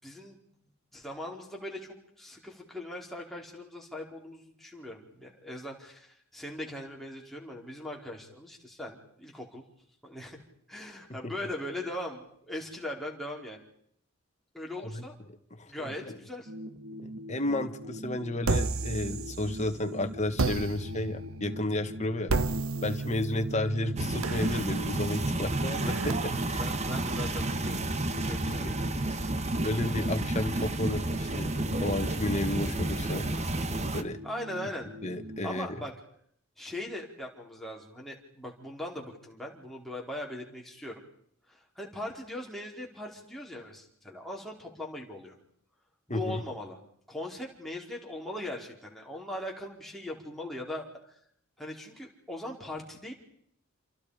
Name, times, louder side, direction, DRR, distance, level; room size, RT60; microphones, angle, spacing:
voice 1, 0.0-0.4 0.9-9.6 10.0-10.4 10.7-13.6 14.5-15.1 15.7-16.5 26.5-29.1 34.2-34.9 35.4-35.9 36.6-41.0 41.5-45.4 46.1-46.8 47.1-51.2 51.6-53.1, left 1 dB, ahead, -1 dB, 4.9 m, -40 dB
voice 2, 15.6-16.2 17.0-22.3 22.8-26.6 28.4-28.7 29.6-33.3 33.9-34.2 35.0-35.8 46.1-46.4, left 1 dB, 35° left, 7 dB, 1.9 m, -32 dB
sound 1, 16.5-35.4, equal, 55° right, 1.9 m, -43 dB
sound 2, 18.4-19.8 20.4-26.1, right 3 dB, 85° right, 1.2 m, -33 dB
sound 3, 24.0-34.0, right 2 dB, 35° right, 1.5 m, -31 dB
29.0 x 28.0 x 5.2 m, 0.67 s
head